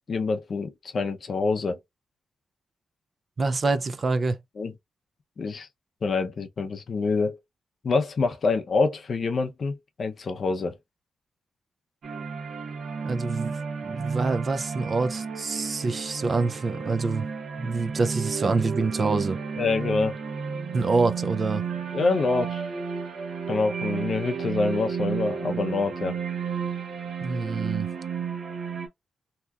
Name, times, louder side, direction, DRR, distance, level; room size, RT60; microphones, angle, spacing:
voice 1, 0.1-1.8 4.6-4.7 5.4-5.7 6.0-7.4 7.8-10.8 19.6-20.2 21.9-22.6 23.5-26.2, left 4 dB, 45° left, 0.5 m, -26 dB
voice 2, 3.4-4.4 13.0-13.6 13.8-17.3 17.6-19.4 20.7-21.6 27.2-27.9, right 3 dB, 35° right, 0.3 m, -26 dB
sound 1, 12.0-28.9, right 6 dB, 65° right, 0.8 m, -32 dB
2.8 x 2.3 x 3.4 m
wide cardioid pair, 160°, 0 cm